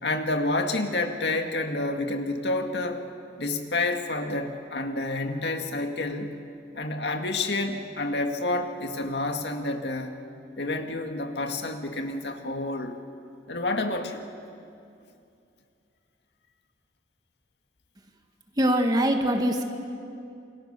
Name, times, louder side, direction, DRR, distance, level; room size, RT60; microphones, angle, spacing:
voice 1, 0.0-3.0 3.4-6.3 6.7-10.2 10.6-13.0 13.5-14.3, left 2 dB, 70° left, 5 dB, 2.0 m, -29 dB
voice 2, 18.6-19.6, right 1 dB, 20° right, 4 dB, 1.6 m, -23 dB
28.0 x 23.5 x 6.8 m, 2.5 s
head